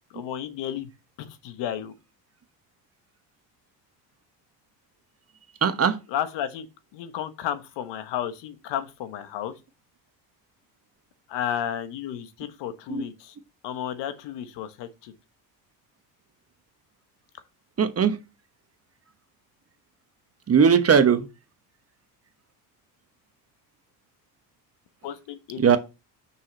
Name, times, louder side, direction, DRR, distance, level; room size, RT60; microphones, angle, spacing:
voice 1, 0.1-0.9 1.2-1.9 6.1-6.7 6.9-9.5 11.3-13.3 13.6-15.1 25.0-25.8, left 10 dB, 60° left, 1.4 m, -32 dB
voice 2, 5.6-6.0 12.9-13.0 17.8-18.2 20.5-21.2 25.6-25.8, right 7 dB, 30° right, 1.1 m, -19 dB
6.2 x 6.2 x 4.1 m
hypercardioid pair, 75°, 48 cm